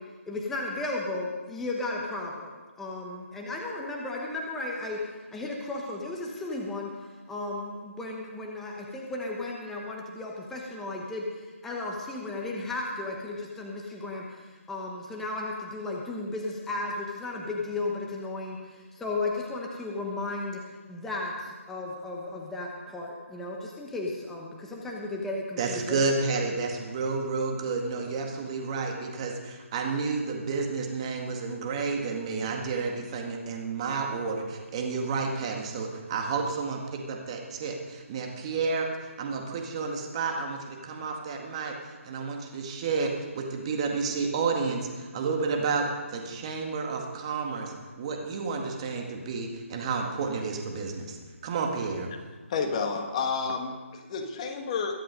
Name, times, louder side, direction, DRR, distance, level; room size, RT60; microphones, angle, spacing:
voice 1, 0.3-2.5 2.8-5.0 5.3-6.9 7.3-11.3 11.6-14.4 14.7-26.1, left 2 dB, 5° left, -2 dB, 1.0 m, -34 dB
voice 2, 25.6-51.2 51.4-52.1, right 4 dB, 25° right, 2 dB, 1.9 m, -31 dB
voice 3, 52.5-55.0, left 5 dB, 25° left, 4 dB, 1.6 m, -30 dB
22.0 x 7.8 x 5.2 m, 1.3 s
figure-of-eight pair, 165°, 7 cm